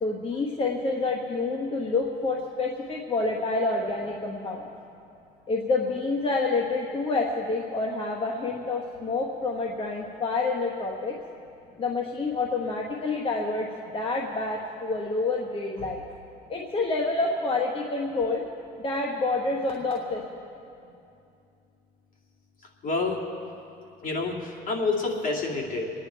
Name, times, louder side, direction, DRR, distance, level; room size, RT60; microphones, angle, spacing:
voice 1, 0.0-4.7 5.5-11.2 11.8-13.7 13.9-16.0 16.5-18.4 18.8-20.2, left 3 dB, 35° left, -1 dB, 1.3 m, -28 dB
voice 2, 22.8-23.2 24.0-25.9, left 3 dB, 55° left, -1 dB, 2.5 m, -28 dB
25.5 x 9.9 x 4.6 m, 2.6 s
cardioid pair, 110°, 17 cm